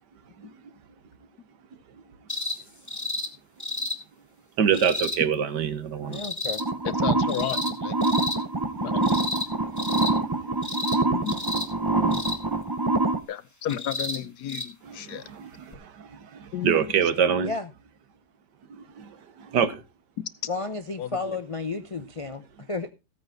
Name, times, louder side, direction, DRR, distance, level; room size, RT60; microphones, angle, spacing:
sound 1, 2.3-2.6 2.9-3.3 3.6-4.0 4.7-5.2 6.1-6.6 7.3-7.7 8.0-8.4 9.0-9.5 9.8-10.1 10.6-11.0 11.3-11.7 12.1-12.4 13.7-14.2 14.5-14.6 15.7-15.8, left 2 dB, 10° left, 1.5 m, -31 dB
voice 1, 4.6-6.2 10.2-10.8 14.9-17.5 19.0-19.8, right 7 dB, 85° right, 12 dB, 1.8 m, -26 dB
voice 2, 6.0-6.6 11.9-12.2 17.4-17.7 20.5-22.9, left 3 dB, 50° left, 9 dB, 0.3 m, -32 dB
sound 2, 6.6-13.2, right 2 dB, 30° right, 0.4 m, -25 dB
voice 3, 7.0-8.0 8.8-9.2 11.1-11.4 12.0-12.1 13.3-15.2 16.5-16.9 21.0-21.4, left 10 dB, 70° left, 16 dB, 1.3 m, -33 dB
15.5 x 8.8 x 3.9 m, 0.27 s
omnidirectional pair, 1.8 m